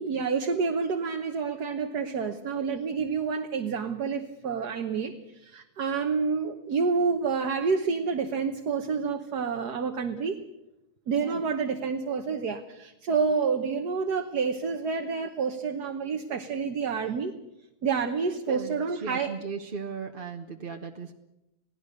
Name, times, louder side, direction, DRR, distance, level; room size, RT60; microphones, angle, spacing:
voice 1, 0.0-10.4 11.1-17.3 17.8-19.3, right 5 dB, 80° right, 4 dB, 1.7 m, -28 dB
voice 2, 18.2-21.1, right 5 dB, 40° right, 4 dB, 1.1 m, -38 dB
27.5 x 17.5 x 6.6 m, 0.92 s
omnidirectional pair, 1.7 m